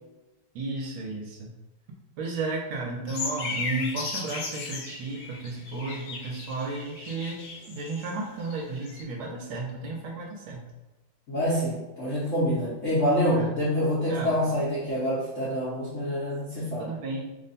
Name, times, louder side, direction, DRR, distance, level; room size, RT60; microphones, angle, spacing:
voice 1, 0.5-1.5 2.2-10.6 13.3-13.5 14.1-14.4 16.8-17.3, right 3 dB, 75° right, 0 dB, 1.3 m, -33 dB
sound 1, 3.1-8.1 8.4-9.0, left 4 dB, 75° left, 1.5 m, -36 dB
voice 2, 11.3-16.9, equal, 55° left, -10 dB, 0.9 m, -26 dB
3.4 x 2.1 x 4.0 m, 1.1 s
omnidirectional pair, 2.4 m